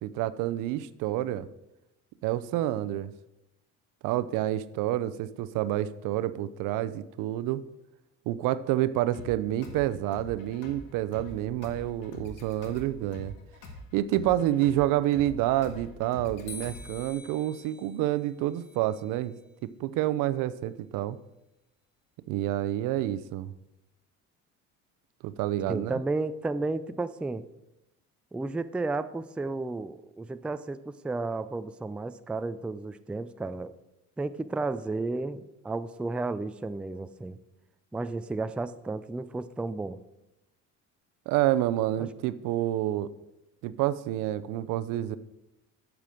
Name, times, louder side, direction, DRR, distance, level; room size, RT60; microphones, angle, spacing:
voice 1, 0.0-1.5 2.2-3.1 4.0-7.6 8.3-13.3 13.9-19.4 19.6-21.2 22.3-23.5 25.2-26.0 41.3-43.1 43.6-45.2, right 13 dB, 75° right, 15 dB, 0.6 m, -28 dB
sound 1, 9.1-17.1, left 1 dB, 75° left, 1.9 m, -45 dB
sound 2, 16.5-19.6, left 4 dB, 60° left, 1.6 m, -48 dB
voice 2, 25.7-27.5 28.3-33.7 34.2-37.4 37.9-40.0 42.0-42.1, right 3 dB, 5° right, 12 dB, 0.3 m, -33 dB
8.5 x 6.1 x 7.6 m, 0.93 s
cardioid pair, 110°, 32 cm